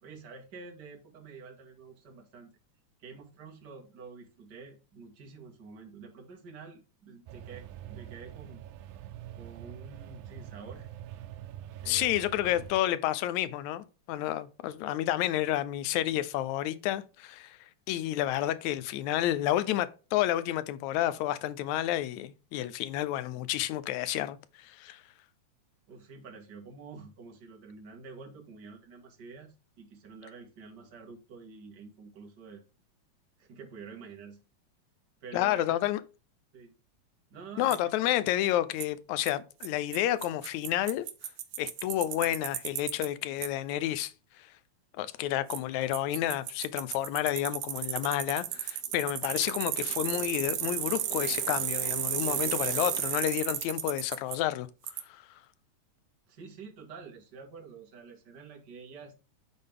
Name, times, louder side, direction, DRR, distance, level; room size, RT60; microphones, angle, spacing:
voice 1, 0.0-2.5 3.0-8.6 9.3-10.9 11.8-12.7 25.9-32.6 33.4-34.4 35.2-35.8 36.5-36.7 37.3-37.9 56.3-59.1, right 5 dB, 40° right, 2.0 m, -48 dB
sound 1, 7.3-12.8, right 12 dB, 90° right, 2.0 m, -45 dB
voice 2, 11.9-17.6 17.9-25.0 35.3-36.0 37.6-41.1 41.6-44.5 45.0-54.7 55.1-55.2, left 13 dB, 80° left, 2.0 m, -30 dB
Bicycle, 37.7-37.8 38.8-38.9 39.3-39.4 39.6-39.7 39.9-40.0 40.2-43.1 43.4-43.5 45.5-45.6 45.9-54.4 54.9-55.0, right 11 dB, 65° right, 1.7 m, -33 dB
10.5 x 4.1 x 3.5 m
omnidirectional pair, 3.4 m